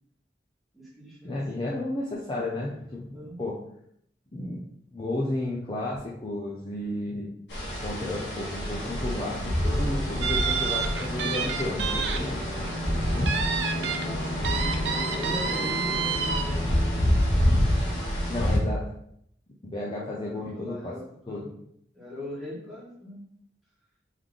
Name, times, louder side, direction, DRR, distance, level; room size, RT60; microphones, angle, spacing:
voice 1, 0.7-1.7 3.1-3.4 12.8-13.0 13.7-16.8 19.8-21.0 21.3-21.5 21.9-23.2, left 1 dB, ahead, -8 dB, 1.5 m, -40 dB
voice 2, 1.2-3.5 4.3-4.6 4.9-7.3 7.8-12.4 13.2-13.4 18.3-18.8 19.6-20.9 21.3-21.4, left 1 dB, 25° left, -5 dB, 0.6 m, -32 dB
sound 1, 7.5-18.6, equal, 90° left, 1.3 m, -27 dB
sound 2, 10.2-12.2 12.5-12.7 13.3-14.0 14.4-16.4, right 6 dB, 90° right, 0.6 m, -29 dB
3.6 x 3.2 x 3.7 m, 0.70 s
head